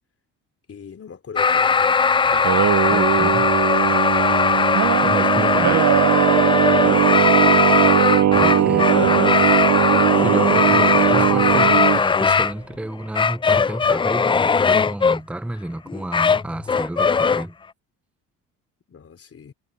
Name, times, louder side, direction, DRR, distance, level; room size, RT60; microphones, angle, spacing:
voice 1, 0.7-2.0 2.4-4.0 6.8-7.8 18.9-19.5, left 6 dB, 40° left, 3.9 m, -42 dB
sound 1, 1.4-12.5 13.1-15.2 15.9-17.4, left 5 dB, 15° left, 0.3 m, -19 dB
Singing, 2.2-12.0, right 10 dB, 50° right, 1.0 m, -19 dB
voice 2, 2.9-3.5 5.0-5.9 8.3-9.4 10.2-17.5, right 1 dB, 5° right, 0.8 m, -30 dB
supercardioid pair, 75°, 36 cm